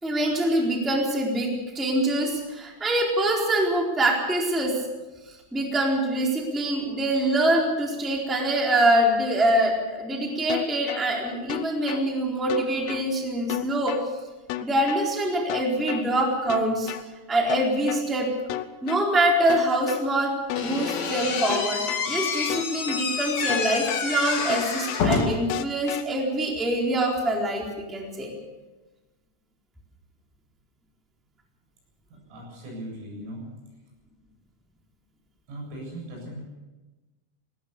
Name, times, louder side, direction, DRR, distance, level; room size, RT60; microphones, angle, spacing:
voice 1, 0.0-4.8 5.5-14.0 14.6-16.9 17.3-18.3 18.8-28.3, right 1 dB, ahead, -1 dB, 3.1 m, -24 dB
sound 1, 10.5-11.0 11.5-12.0 12.5-13.0 13.5-14.0 14.5-15.0 15.5-16.0 16.5-17.0 17.5-18.0 18.5-19.0 19.5-20.0 20.5-21.0 21.5-22.0 22.5-23.0 23.5-24.0 24.5-25.0 25.5-26.0, left 15 dB, 80° left, 3.5 m, -32 dB
Slam / Squeak, 20.5-25.5, left 5 dB, 50° left, 2.4 m, -28 dB
voice 2, 32.1-33.5 35.5-36.5, right 1 dB, 85° right, -1 dB, 10.5 m, -38 dB
20.5 x 19.0 x 6.9 m, 1.1 s
omnidirectional pair, 6.0 m